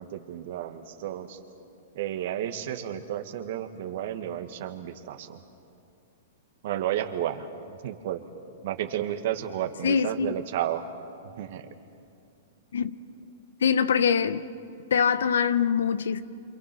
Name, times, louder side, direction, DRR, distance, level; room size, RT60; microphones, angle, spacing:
voice 1, 0.0-1.4 2.0-5.4 6.6-7.5 7.8-8.2 8.6-10.8 11.4-11.7, right 11 dB, 60° right, 1.8 m, -32 dB
voice 2, 9.8-10.3 12.7-13.0 13.6-14.4 14.9-16.2, left 7 dB, 80° left, 0.9 m, -23 dB
27.5 x 26.5 x 6.2 m
hypercardioid pair, 125°, 0 cm